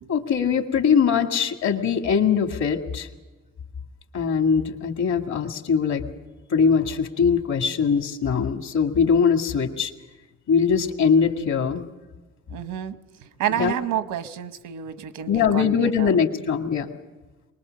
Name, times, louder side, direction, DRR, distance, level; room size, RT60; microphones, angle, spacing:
voice 1, 0.1-3.1 4.1-6.0 6.5-9.9 10.5-11.9 13.6-13.7 15.3-16.9, left 6 dB, 70° left, 5 dB, 2.0 m, -21 dB
voice 2, 12.5-13.0 13.4-16.1, right 10 dB, 85° right, 12 dB, 1.0 m, -29 dB
23.5 x 20.0 x 6.5 m, 1.2 s
cardioid pair, 90°, 30 cm